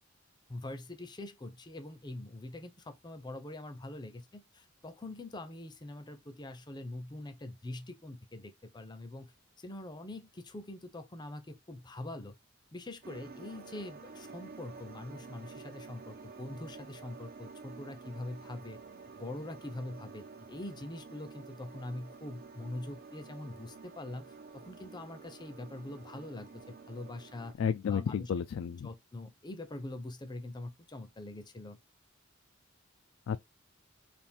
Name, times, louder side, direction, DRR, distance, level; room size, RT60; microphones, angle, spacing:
voice 1, 0.5-9.3 9.6-12.3 12.7-18.8 19.2-27.5 27.9-28.3 28.8-31.8, left 2 dB, 20° left, 0.6 m, -44 dB
sound 1, 13.0-27.5, right 4 dB, 45° right, 0.6 m, -50 dB
voice 2, 27.6-28.9 33.3-33.4, left 7 dB, 70° left, 0.3 m, -32 dB
3.6 x 2.5 x 4.3 m
head